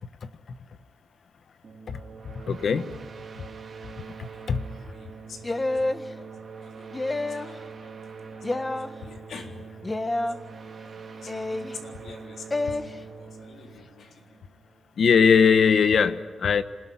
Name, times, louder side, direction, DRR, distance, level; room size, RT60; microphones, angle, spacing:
sound 1, 1.6-15.0, right 5 dB, 45° right, 3.3 m, -43 dB
voice 1, 2.5-3.0 4.5-4.6 15.0-16.6, left 6 dB, 60° left, 11 dB, 1.2 m, -20 dB
voice 2, 4.3-5.4 6.0-6.3 6.6-6.9 7.2-7.9 8.2-8.8 9.0-9.5 10.0-10.2 10.8-14.4, left 5 dB, 80° left, 2 dB, 3.8 m, -48 dB
sound 2, 5.4-6.0 6.9-7.5 8.4-8.9 9.8-10.4 11.3-11.7 12.5-12.8, left 2 dB, 20° left, 1.0 m, -28 dB
27.5 x 20.5 x 9.9 m, 1.5 s
wide cardioid pair, 170°, 0 cm